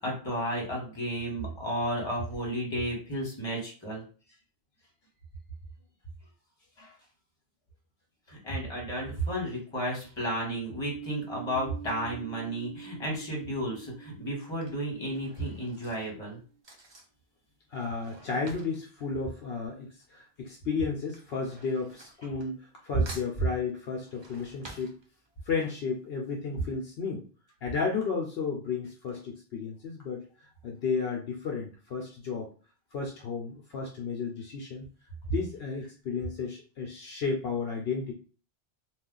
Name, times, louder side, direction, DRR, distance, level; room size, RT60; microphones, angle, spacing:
voice 1, 0.0-4.0 6.8-6.9 8.3-16.4 22.9-23.0, right 1 dB, 25° left, -2 dB, 1.2 m, -32 dB
sound 1, 10.9-16.5, right 9 dB, 65° right, 0.7 m, -46 dB
Drawer open or close / Cutlery silverware, 13.4-13.5 14.3-20.2 20.4-22.8 23.1-25.6 26.0-26.1 26.3-26.4, right 2 dB, 40° right, 0.4 m, -51 dB
voice 2, 17.7-25.0 25.4-27.2 27.6-32.5 32.9-34.9 35.3-38.1, left 5 dB, 70° left, 0 dB, 0.8 m, -33 dB
2.5 x 2.3 x 3.7 m, 0.39 s
omnidirectional pair, 1.1 m